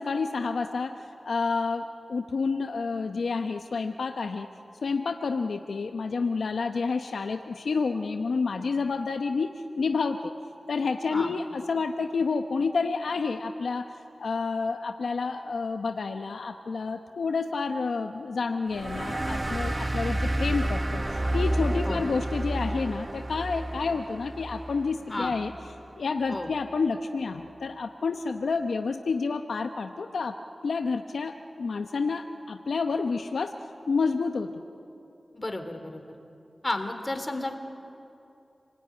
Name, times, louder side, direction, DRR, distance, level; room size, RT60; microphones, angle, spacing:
voice 1, 0.0-4.5 4.8-10.3 10.7-13.9 14.2-25.5 26.0-30.4 30.6-33.5 33.9-34.6, left 4 dB, 85° left, 6 dB, 0.9 m, -29 dB
sound 1, 18.7-25.8, right 1 dB, 30° right, 1.0 m, -30 dB
voice 2, 35.3-36.1 36.6-37.5, left 2 dB, 30° left, 6 dB, 3.3 m, -32 dB
28.5 x 19.5 x 9.6 m, 2.8 s
cardioid pair, 55°, 0 cm